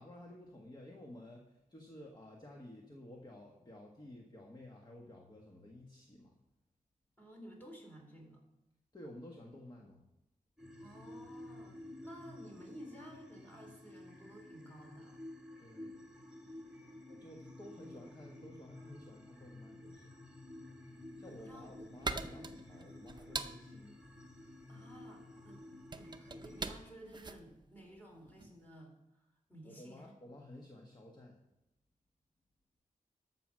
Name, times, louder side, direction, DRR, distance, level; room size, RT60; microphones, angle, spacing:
voice 1, 0.0-6.3 8.9-10.0 15.6-16.0 17.1-20.2 21.2-24.0 29.6-31.4, left 1 dB, 30° left, 0 dB, 1.4 m, -53 dB
voice 2, 7.2-8.4 10.8-15.2 21.2-21.7 24.7-25.7 26.0-30.1, equal, 15° left, 0 dB, 3.5 m, -54 dB
sound 1, 10.6-26.7, left 1 dB, 5° right, 1.9 m, -52 dB
sound 2, 21.2-28.6, right 3 dB, 30° right, 0.6 m, -44 dB
13.5 x 6.0 x 6.3 m, 0.89 s
wide cardioid pair, 115°, 14 cm